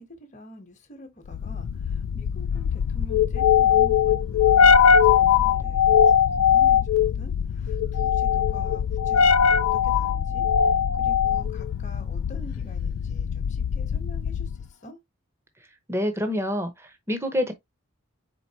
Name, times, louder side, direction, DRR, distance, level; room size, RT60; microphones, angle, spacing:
voice 1, 0.0-14.5 14.8-15.0, equal, 35° left, 1.1 m, -46 dB
sound 1, 1.3-14.7, left 7 dB, 85° left, 0.3 m, -21 dB
voice 2, 15.9-17.5, equal, 10° right, 0.8 m, -27 dB
4.6 x 3.8 x 2.8 m
head